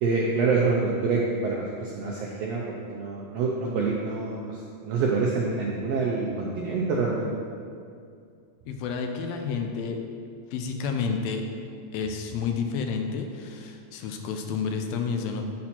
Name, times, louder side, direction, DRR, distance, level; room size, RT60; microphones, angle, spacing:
voice 1, 0.0-4.6 4.8-7.3, right 4 dB, 80° right, -2 dB, 1.4 m, -26 dB
voice 2, 8.7-10.0 10.5-11.5 11.9-15.4, left 5 dB, 80° left, 5 dB, 1.6 m, -30 dB
8.6 x 4.2 x 4.3 m, 2.4 s
omnidirectional pair, 3.5 m